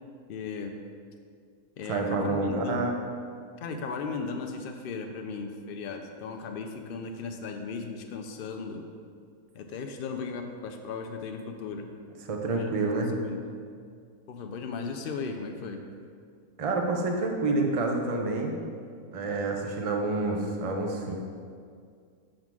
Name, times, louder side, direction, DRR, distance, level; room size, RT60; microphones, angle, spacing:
voice 1, 0.3-0.8 1.8-2.9 3.6-8.8 9.5-11.9 12.5-13.4 14.3-15.9, left 4 dB, 75° left, 4 dB, 0.5 m, -36 dB
voice 2, 1.9-2.9 12.3-13.2 16.6-18.6 19.1-21.1, right 2 dB, 45° right, 2 dB, 0.4 m, -28 dB
6.4 x 3.7 x 6.0 m, 2.2 s
omnidirectional pair, 1.6 m